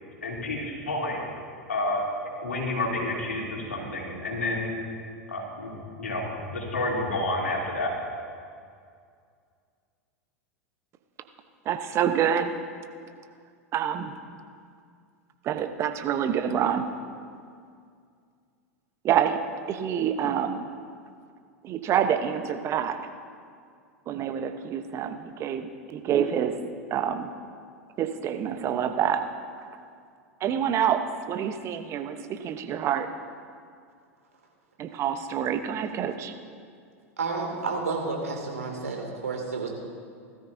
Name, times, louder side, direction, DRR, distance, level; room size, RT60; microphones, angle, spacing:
voice 1, 0.2-1.2 1.7-2.1 2.4-4.7 5.3-7.9, left 2 dB, 80° left, -2 dB, 3.0 m, -30 dB
voice 2, 11.6-12.5 13.7-14.1 15.4-16.9 19.0-19.4 19.7-20.7 21.6-23.0 24.1-26.6 26.9-27.3 28.0-29.3 30.4-33.1 34.8-36.3, right 9 dB, 35° right, 8 dB, 1.0 m, -27 dB
voice 3, 37.2-39.7, right 4 dB, 80° right, 1 dB, 2.4 m, -30 dB
19.5 x 13.5 x 2.7 m, 2.2 s
figure-of-eight pair, 90°, 8 cm